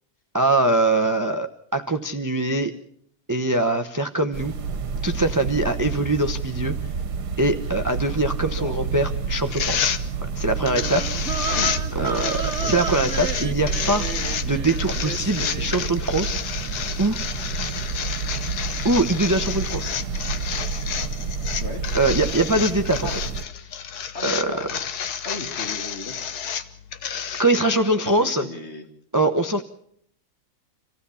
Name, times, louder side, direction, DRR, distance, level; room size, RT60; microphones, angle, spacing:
voice 1, 0.3-2.7 3.3-4.5 5.0-6.7 7.4-9.9 10.2-11.4 11.9-14.1 14.4-16.4 17.0-17.2 18.8-19.9 21.9-23.1 23.6-23.7 24.2-24.5 27.4-28.5 29.1-29.6, right 2 dB, 15° right, 7 dB, 0.7 m, -23 dB
sound 1, 4.3-23.4, right 5 dB, 70° right, 1.8 m, -29 dB
sound 2, 9.5-27.4, left 8 dB, 65° left, 1.5 m, -30 dB
sound 3, 10.5-15.8, right 6 dB, 45° right, 1.4 m, -33 dB
voice 2, 11.5-11.8 12.6-12.8 21.6-21.9 23.0-23.2 24.1-24.7 25.2-26.3 28.0-28.9, left 3 dB, 40° left, 5 dB, 2.4 m, -35 dB
27.0 x 16.0 x 7.1 m, 0.66 s
omnidirectional pair, 1.8 m